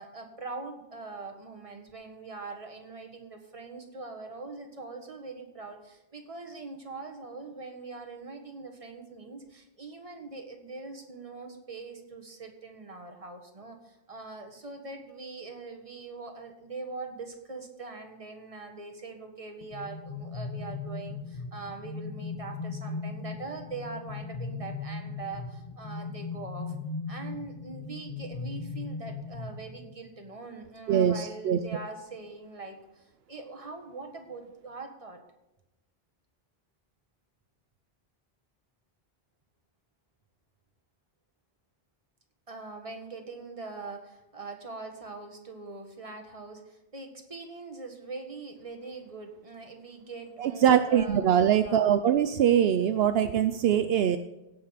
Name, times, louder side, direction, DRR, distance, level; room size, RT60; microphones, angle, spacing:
voice 1, 0.0-26.7 27.1-35.2 42.5-52.0, right 3 dB, 35° right, 4 dB, 1.6 m, -42 dB
sound 1, 19.6-30.1, left 4 dB, 40° left, 1.5 m, -38 dB
voice 2, 30.9-31.6 50.4-54.2, right 9 dB, 75° right, 10 dB, 0.8 m, -23 dB
16.5 x 5.6 x 5.8 m, 0.97 s
omnidirectional pair, 1.0 m